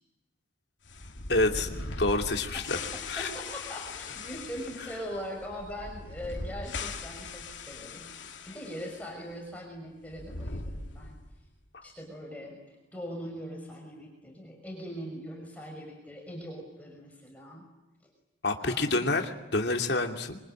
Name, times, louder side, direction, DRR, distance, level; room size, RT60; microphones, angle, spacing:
sound 1, 0.8-9.0 9.3-9.4 10.0-11.4, left 3 dB, 85° left, 2.7 m, -40 dB
voice 1, 1.3-2.8 3.1-3.3 18.4-20.4, left 2 dB, 60° left, 4 dB, 2.7 m, -28 dB
voice 2, 2.5-8.1 8.4-11.2 11.8-12.6 12.9-17.6 18.6-19.2, equal, 10° left, -1 dB, 5.8 m, -41 dB
26.5 x 24.0 x 9.0 m, 1.0 s
head